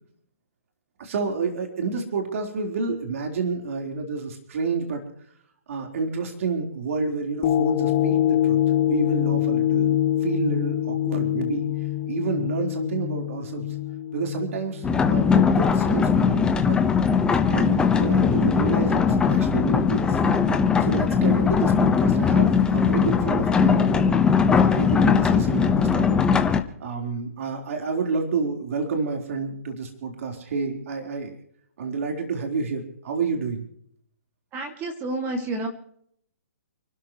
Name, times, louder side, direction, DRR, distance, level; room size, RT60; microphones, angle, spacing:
voice 1, 1.0-5.0 5.7-8.6 8.9-11.6 12.1-13.6 14.1-16.8 17.5-19.0 19.3-20.2 20.8-26.2 26.8-31.3 31.8-33.6, right 4 dB, 60° right, 2 dB, 4.0 m, -29 dB
sound 1, 7.4-15.8 16.3-16.4, left 12 dB, 40° left, 1.5 m, -25 dB
sound 2, 14.8-26.6, left 6 dB, 10° left, 1.1 m, -20 dB
voice 2, 34.5-35.7, right 2 dB, 20° right, 4 dB, 2.4 m, -29 dB
29.5 x 12.5 x 3.1 m, 0.66 s
hypercardioid pair, 140°, 8 cm